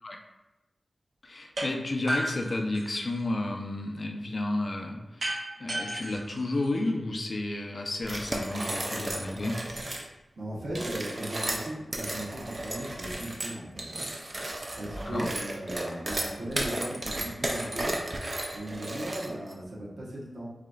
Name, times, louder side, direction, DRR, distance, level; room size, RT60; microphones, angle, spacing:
voice 1, 1.2-5.3 5.6-9.5 15.1-15.3, left 2 dB, 55° left, 2 dB, 0.5 m, -31 dB
sound 1, 1.6-1.7 2.1-3.3 5.2-7.2, right 1 dB, 65° right, 0.9 m, -34 dB
sound 2, 8.0-10.1 10.7-19.5, right 1 dB, 40° right, 0.6 m, -34 dB
voice 2, 10.4-13.9 14.8-18.0 18.5-20.5, right 1 dB, 85° right, -6 dB, 1.1 m, -37 dB
4.9 x 2.9 x 2.4 m, 1.0 s
wide cardioid pair, 75°, 0 cm